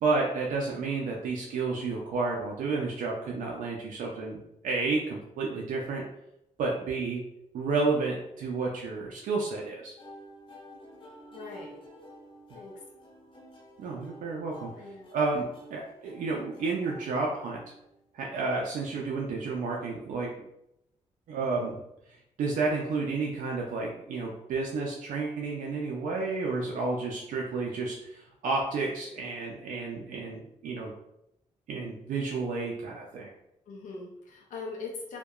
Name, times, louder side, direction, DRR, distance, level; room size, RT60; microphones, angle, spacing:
voice 1, 0.0-6.0 6.6-7.2 7.5-9.9 13.8-14.7 15.1-17.6 18.1-20.3 21.3-21.8 22.4-30.9 31.7-33.3, right 3 dB, 85° right, -1 dB, 0.4 m, -31 dB
sound 1, 10.0-17.9, equal, 40° left, 0.7 m, -50 dB
voice 2, 11.3-11.8 12.5-12.8 14.8-15.1 33.7-35.2, left 3 dB, 85° left, -1 dB, 0.5 m, -41 dB
2.7 x 2.1 x 2.3 m, 0.81 s
cardioid pair, 90°, 13 cm